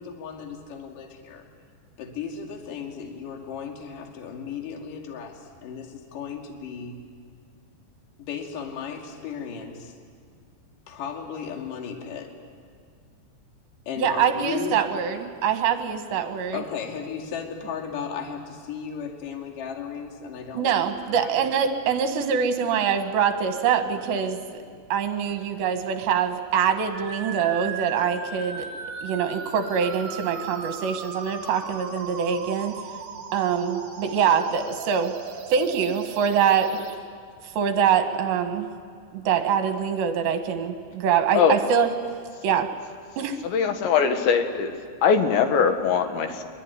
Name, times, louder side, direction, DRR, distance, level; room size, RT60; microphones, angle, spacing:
voice 1, 0.0-1.5 2.0-7.0 8.2-10.0 10.9-12.4 13.9-14.8 16.5-20.8 21.1-21.5, left 7 dB, 55° left, 2 dB, 3.7 m, -35 dB
voice 2, 14.0-16.6 20.5-24.4 24.9-28.7 29.0-32.8 33.3-35.1 35.5-36.7 37.6-38.7 39.1-41.9 42.4-42.7 43.2-43.4, right 7 dB, 75° right, 7 dB, 3.8 m, -24 dB
sound 1, 26.9-36.9, right 5 dB, 45° right, 2.3 m, -37 dB
voice 3, 43.4-44.7 45.0-46.4, left 6 dB, 80° left, 7 dB, 3.9 m, -21 dB
24.5 x 23.0 x 9.9 m, 2.1 s
omnidirectional pair, 5.1 m